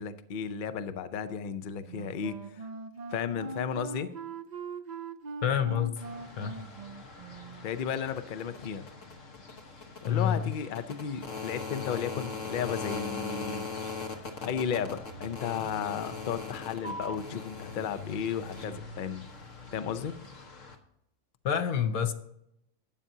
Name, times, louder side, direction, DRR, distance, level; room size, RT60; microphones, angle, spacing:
voice 1, 0.0-2.7 3.1-4.1 7.6-8.9 10.0-13.9 14.4-19.2 19.7-20.1, left 7 dB, 50° left, 0.7 m, -34 dB
Wind instrument woodwind instrument, 1.8-7.7, right 4 dB, 55° right, 0.5 m, -41 dB
voice 2, 5.4-6.0 6.4-6.6 10.1-10.5 21.4-22.1, left 8 dB, 90° left, 1.3 m, -27 dB
sound 1, 6.0-20.7, left 4 dB, 65° left, 1.6 m, -41 dB
12.5 x 8.7 x 2.8 m
omnidirectional pair, 1.4 m